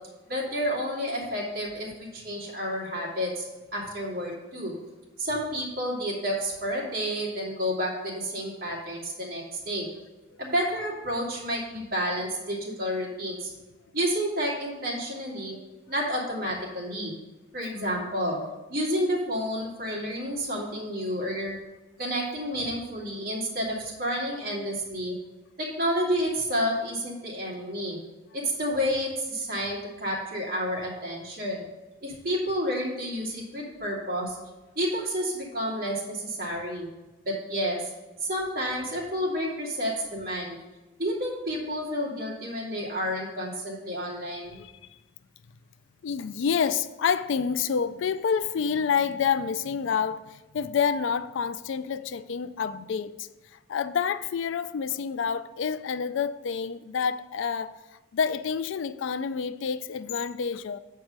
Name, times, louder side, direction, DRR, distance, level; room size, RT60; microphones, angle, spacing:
voice 1, 0.3-3.4 3.7-4.7 5.2-9.9 10.4-13.5 13.9-15.6 15.9-17.1 17.5-18.4 18.7-21.6 22.0-25.1 25.6-28.0 28.3-31.6 32.0-34.4 34.8-36.9 37.3-37.9 38.2-40.5 41.0-44.6, equal, 45° right, 2.4 m, -30 dB
voice 2, 46.0-57.8 58.1-60.8, left 6 dB, 70° left, 0.3 m, -28 dB
7.3 x 4.6 x 6.6 m
head